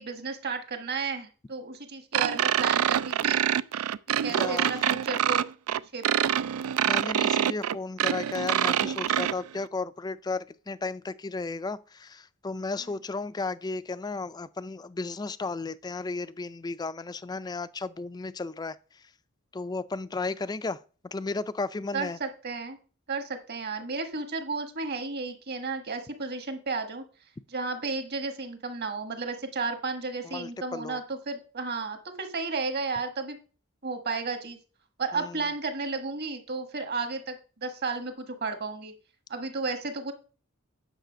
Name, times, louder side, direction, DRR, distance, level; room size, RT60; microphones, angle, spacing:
voice 1, 0.0-3.4 4.2-5.4 5.9-6.5 21.9-22.8 23.1-27.0 27.5-33.4 33.8-34.6 35.0-38.9 39.3-40.1, right 4 dB, 50° right, 1.4 m, -33 dB
sound 1, 2.1-9.3, right 10 dB, 90° right, 0.4 m, -25 dB
voice 2, 4.3-4.7 6.8-19.0 19.5-22.2 30.2-31.0 35.1-35.4, left 3 dB, 20° left, 0.3 m, -34 dB
9.1 x 6.5 x 5.1 m
head